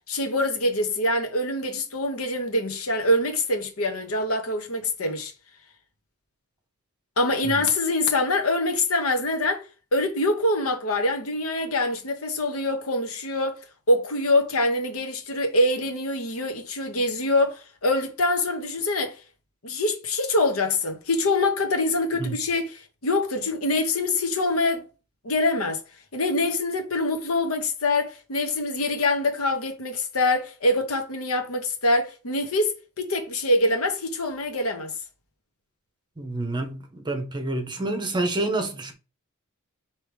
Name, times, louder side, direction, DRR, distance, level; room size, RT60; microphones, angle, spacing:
voice 1, 0.1-5.3 7.2-9.6 9.9-13.5 13.9-19.2 19.6-24.9 25.2-25.8 26.1-34.9, left 2 dB, 80° left, 1.0 m, -24 dB
voice 2, 36.2-38.9, right 2 dB, 20° right, 0.8 m, -28 dB
4.6 x 3.0 x 3.4 m
head